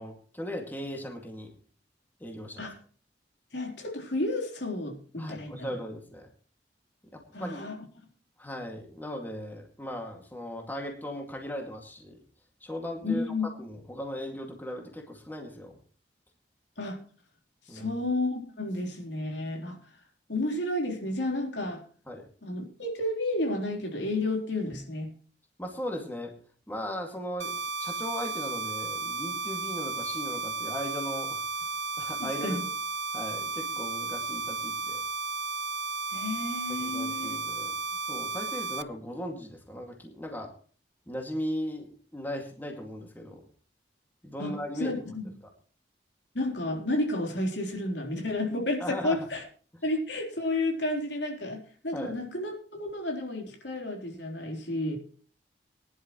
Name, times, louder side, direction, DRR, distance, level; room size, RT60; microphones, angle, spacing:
voice 1, 0.0-1.5 2.2-2.7 5.2-6.3 7.1-7.8 8.4-12.2 12.6-15.8 17.7-18.0 22.1-22.2 25.6-26.3 26.7-31.4 32.0-32.6 33.1-35.0 36.7-37.7 38.1-40.5 41.1-43.4 44.2-45.2 48.8-49.3 51.9-52.1, equal, 10° left, 2 dB, 2.2 m, -38 dB
voice 2, 3.5-5.7 7.3-7.7 13.0-13.5 16.8-17.0 17.7-19.8 20.3-21.8 22.4-25.1 32.2-32.7 36.1-37.4 44.4-45.3 46.3-49.4 49.8-55.0, left 2 dB, 85° left, 1 dB, 3.8 m, -31 dB
sound 1, 27.4-38.8, right 3 dB, 90° right, 0.6 m, -34 dB
20.5 x 11.0 x 3.1 m, 0.42 s
head